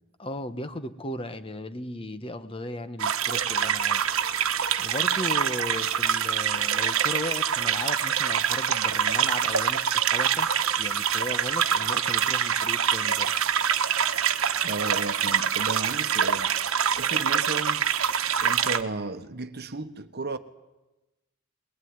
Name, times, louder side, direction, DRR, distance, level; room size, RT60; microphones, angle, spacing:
voice 1, 0.2-4.0 4.8-10.5 10.8-13.3, left 1 dB, 25° left, 1.2 m, -36 dB
sound 1, 3.0-18.8, right 8 dB, 75° right, 1.2 m, -25 dB
voice 2, 14.6-16.5 17.0-17.9 18.4-20.4, right 3 dB, 50° right, 1.2 m, -34 dB
21.5 x 21.0 x 9.6 m
head